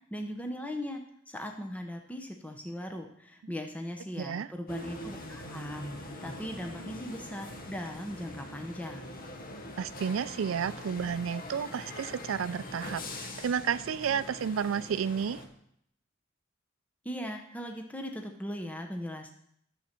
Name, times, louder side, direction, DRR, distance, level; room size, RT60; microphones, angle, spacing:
voice 1, 0.1-1.0 1.3-9.2 17.0-19.3, equal, 10° left, 4 dB, 0.7 m, -39 dB
voice 2, 4.2-4.5 9.8-15.4, right 7 dB, 85° right, 17 dB, 0.4 m, -31 dB
sound 1, 4.7-15.5, left 1 dB, 45° left, 1.1 m, -43 dB
11.5 x 7.2 x 4.4 m, 0.71 s
head